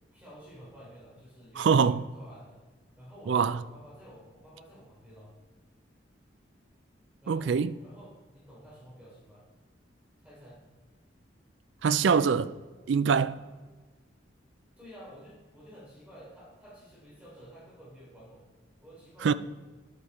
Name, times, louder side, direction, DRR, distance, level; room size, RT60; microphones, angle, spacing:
voice 1, 0.1-2.6 3.0-5.3 7.2-9.5 10.2-10.6 14.8-18.4 18.8-19.4, equal, 10° right, 3.7 m, -51 dB
voice 2, 1.6-2.0 3.3-3.6 7.3-7.7 11.8-12.5 12.9-13.4 19.2-19.3, right 6 dB, 70° right, 0.4 m, -24 dB
10.5 x 8.4 x 4.3 m
head